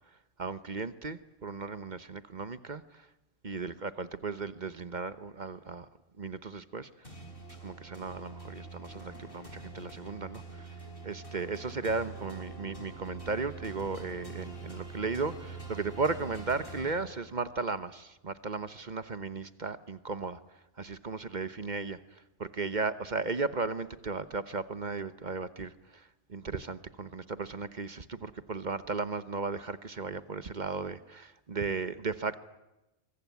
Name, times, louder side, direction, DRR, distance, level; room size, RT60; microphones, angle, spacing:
voice 1, 0.4-3.1 3.4-5.9 6.2-7.1 7.6-20.4 20.8-32.4, right 4 dB, 35° right, 13 dB, 1.1 m, -36 dB
sound 1, 7.0-17.6, right 3 dB, 40° left, 5.3 m, -45 dB
24.0 x 23.5 x 9.5 m, 0.97 s
omnidirectional pair, 1.4 m